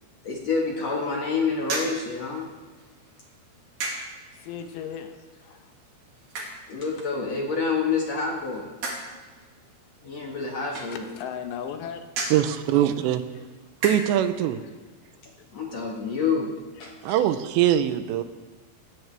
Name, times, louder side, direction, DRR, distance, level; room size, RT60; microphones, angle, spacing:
voice 1, 0.2-2.5 6.7-8.7 10.0-11.0 15.5-16.5 16.8-17.2, left 4 dB, 55° left, -1 dB, 1.9 m, -28 dB
sound 1, 1.6-14.4, right 2 dB, 50° right, 3.2 m, -39 dB
voice 2, 4.3-5.1 5.4-5.7 10.9-12.0 14.8-14.9 16.8-16.9, left 8 dB, 75° left, 6 dB, 3.0 m, -36 dB
voice 3, 12.3-13.2 13.8-14.6 17.0-18.2, right 11 dB, 80° right, 10 dB, 2.8 m, -22 dB
16.5 x 16.0 x 3.4 m, 1.3 s
omnidirectional pair, 5.3 m